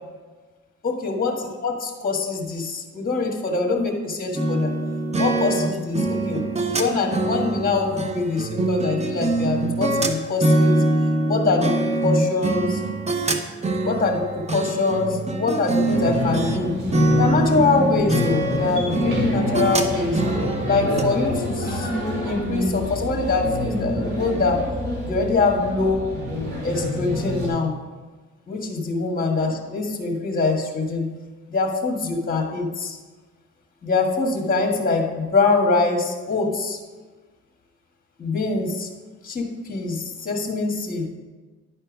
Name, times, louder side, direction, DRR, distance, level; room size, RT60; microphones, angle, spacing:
voice 1, 0.8-4.7 5.2-10.8 11.3-12.8 13.8-16.7 17.2-20.2 20.6-21.9 22.2-24.6 25.0-26.0 26.6-27.7 28.5-31.1 31.5-33.0 33.8-36.8 38.2-38.9 39.2-41.1, left 3 dB, 30° left, 1 dB, 1.6 m, -24 dB
sound 1, 4.3-16.6 16.9-21.0, right 2 dB, 20° right, 0.8 m, -23 dB
sound 2, 15.9-27.5, left 1 dB, 85° right, 2.6 m, -27 dB
10.0 x 4.4 x 5.1 m, 1.3 s
cardioid pair, 90°, 30 cm